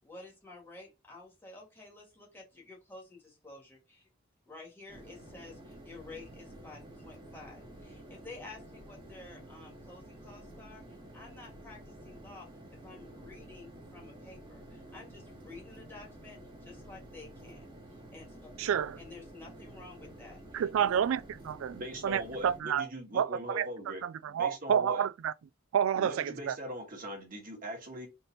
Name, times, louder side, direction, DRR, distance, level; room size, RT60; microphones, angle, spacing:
voice 1, 0.0-4.1 4.5-18.5 19.0-21.0, left 3 dB, 10° left, 1.8 m, -51 dB
sound 1, 4.9-22.6, right 1 dB, 25° right, 1.3 m, -50 dB
voice 2, 18.6-19.0 20.5-21.8 22.0-22.9 23.1-23.7 24.0-25.3 25.7-26.6, right 8 dB, 85° right, 0.3 m, -29 dB
voice 3, 21.7-25.1 26.0-28.1, equal, 45° right, 1.5 m, -41 dB
4.1 x 3.5 x 2.8 m
head